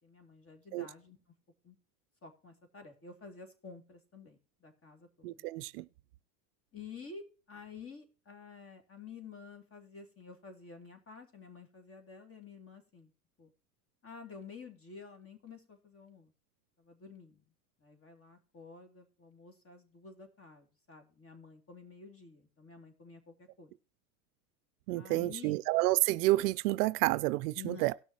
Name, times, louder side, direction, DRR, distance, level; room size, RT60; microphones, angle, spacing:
voice 1, 0.0-1.2 1.6-1.8 2.2-5.4 6.7-13.1 13.4-13.5 14.0-16.3 16.8-17.4 17.8-23.7 24.9-25.6 27.5-28.0, left 5 dB, 25° left, 2.7 m, -51 dB
voice 2, 5.2-5.9 24.9-27.9, right 19 dB, 70° right, 0.5 m, -29 dB
18.5 x 6.2 x 2.9 m
hypercardioid pair, 90°, 48 cm